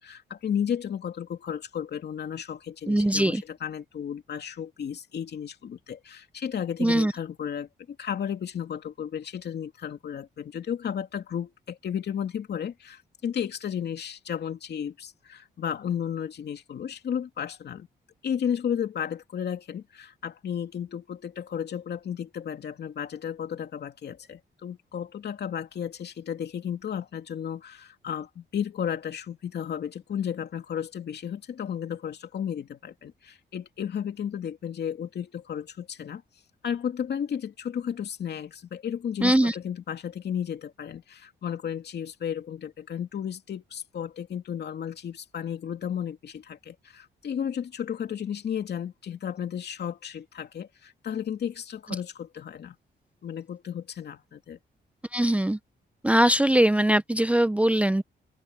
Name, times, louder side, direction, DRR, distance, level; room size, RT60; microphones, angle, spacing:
voice 1, 0.0-17.9 18.2-36.2 36.6-52.8 53.2-54.6, left 8 dB, 65° left, 2.7 m, -33 dB
voice 2, 2.9-3.4 6.8-7.1 39.2-39.5 55.1-55.6 56.0-58.0, right 1 dB, 5° right, 0.5 m, -21 dB
open air
cardioid pair, 95°, 19 cm